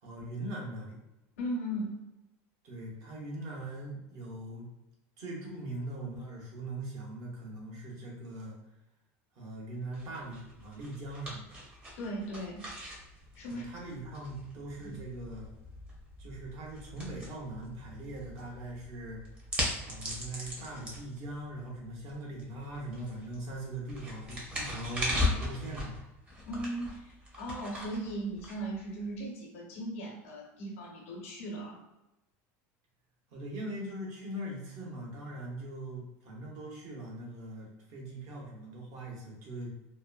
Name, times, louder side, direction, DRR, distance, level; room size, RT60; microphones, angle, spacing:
voice 1, 0.0-1.0 2.6-4.7 5.2-8.6 9.4-11.6 13.5-15.5 16.2-19.2 19.8-26.0 33.3-39.7, right 1 dB, 50° right, -2 dB, 0.9 m, -41 dB
voice 2, 1.4-2.0 12.0-12.7 13.3-13.7 14.8-15.0 26.4-31.8, right 1 dB, 90° left, -2 dB, 0.9 m, -38 dB
sound 1, 9.9-29.2, left 1 dB, 20° right, 0.8 m, -39 dB
2.8 x 2.1 x 2.4 m, 0.96 s
supercardioid pair, 135°, 7 cm